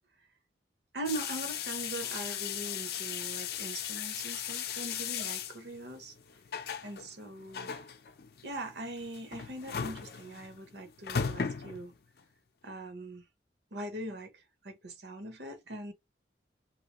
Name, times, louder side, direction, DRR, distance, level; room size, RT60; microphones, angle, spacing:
voice 1, 0.9-6.1 6.8-7.7 8.4-11.9 12.6-13.2 13.7-15.9, right 1 dB, 70° right, 0.9 m, -41 dB
sound 1, 1.1-12.2, left 7 dB, 55° left, 0.5 m, -37 dB
3.1 x 2.8 x 2.9 m
head